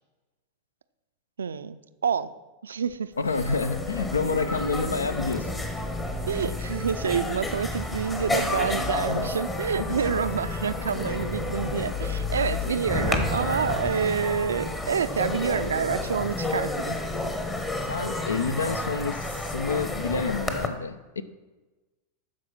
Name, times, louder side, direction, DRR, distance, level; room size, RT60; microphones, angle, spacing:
voice 1, 1.4-2.3 2.6-3.1 6.3-17.0, right 7 dB, 70° right, 13 dB, 0.4 m, -28 dB
sound 1, 2.9-3.0 3.2-20.7, left 2 dB, 15° left, 1.0 m, -31 dB
voice 2, 3.2-5.5 9.1-9.3 9.7-9.9 17.9-21.2, left 4 dB, 75° left, 14 dB, 0.5 m, -28 dB
Thunder, 12.9-15.1, left 1 dB, 30° left, 1.5 m, -31 dB
12.5 x 4.7 x 6.0 m, 1.2 s
figure-of-eight pair, 90°, 0 cm